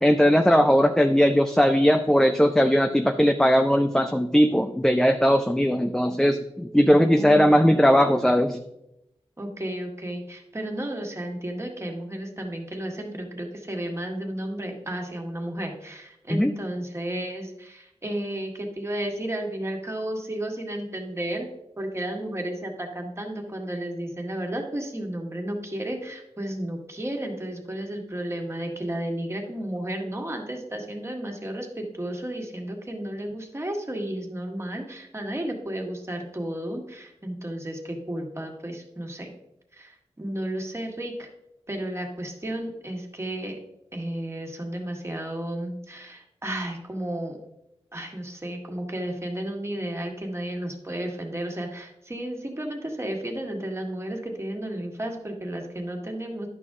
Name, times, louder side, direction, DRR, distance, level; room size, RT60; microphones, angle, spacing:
voice 1, 0.0-8.6 16.3-16.5, equal, 5° left, 7 dB, 0.5 m, -19 dB
voice 2, 6.8-7.6 9.4-21.5 21.8-39.3 39.7-41.3 41.7-43.6 43.9-47.4 47.9-56.5, right 1 dB, 25° right, 2 dB, 1.8 m, -33 dB
11.0 x 6.1 x 3.7 m, 0.83 s
wide cardioid pair, 75°, 11 cm